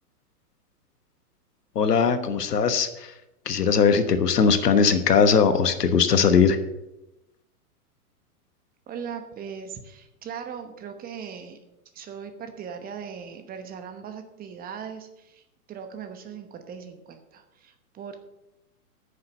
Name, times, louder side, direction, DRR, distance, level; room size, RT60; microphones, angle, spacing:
voice 1, 1.7-3.1 3.4-6.6, left 6 dB, 85° left, 10 dB, 1.3 m, -20 dB
voice 2, 8.9-11.6 11.9-18.2, right 7 dB, 20° right, 7 dB, 1.0 m, -39 dB
9.7 x 6.7 x 6.9 m, 0.91 s
hypercardioid pair, 130°, 46 cm